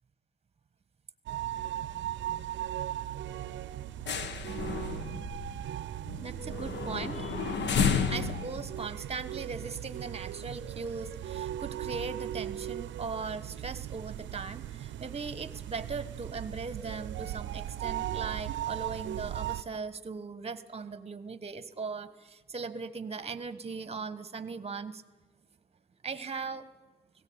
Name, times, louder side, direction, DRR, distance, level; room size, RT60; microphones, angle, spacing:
sound 1, 1.3-19.6, right 12 dB, 70° right, 0.6 m, -38 dB
sound 2, 1.5-2.0 2.3-2.5 2.9-3.0 3.4-10.1 10.6-10.7, left 6 dB, 65° left, 1.5 m, -33 dB
voice 1, 6.2-7.4 8.1-25.0 26.0-26.7, right 4 dB, 30° right, 14 dB, 1.3 m, -39 dB
18.0 x 17.0 x 8.8 m, 1.2 s
cardioid pair, 90°, 20 cm